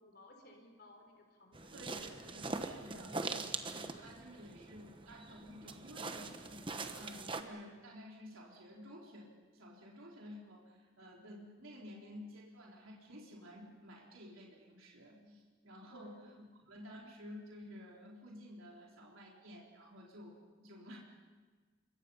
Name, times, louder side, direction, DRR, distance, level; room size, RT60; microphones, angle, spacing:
voice 1, 0.0-2.0 15.9-16.3, left 1 dB, 50° left, 3 dB, 3.8 m, -58 dB
sound 1, 1.5-7.4, right 3 dB, 25° right, 1.1 m, -43 dB
voice 2, 1.7-21.0, equal, 90° right, -2 dB, 3.9 m, -52 dB
28.0 x 24.5 x 5.6 m, 1.4 s
head